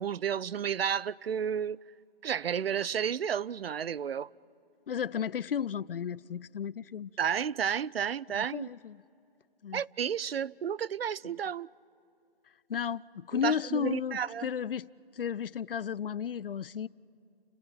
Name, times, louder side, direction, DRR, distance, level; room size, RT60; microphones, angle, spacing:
voice 1, 0.0-1.8 2.2-4.3 7.2-8.7 9.7-11.7 13.4-14.5, right 8 dB, 75° right, 0.5 m, -32 dB
voice 2, 4.9-7.1 8.3-9.0 9.6-9.8 11.2-11.3 12.7-16.9, left 8 dB, 65° left, 0.5 m, -34 dB
30.0 x 15.0 x 7.9 m
hypercardioid pair, 165°, 30 cm